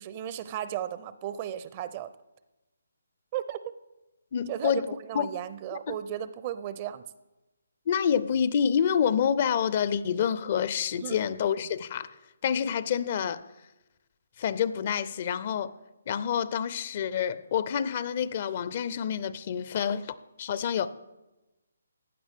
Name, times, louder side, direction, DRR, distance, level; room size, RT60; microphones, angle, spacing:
voice 1, 0.0-2.1 3.3-3.6 4.5-7.0 11.0-11.2, right 11 dB, 30° right, 0.5 m, -35 dB
voice 2, 4.3-4.9 5.1-5.3 5.7-5.9 7.9-12.1 12.4-13.4 14.4-15.7 16.1-20.9, left 8 dB, 40° left, 0.5 m, -28 dB
15.5 x 9.8 x 3.5 m
figure-of-eight pair, 145°, 0 cm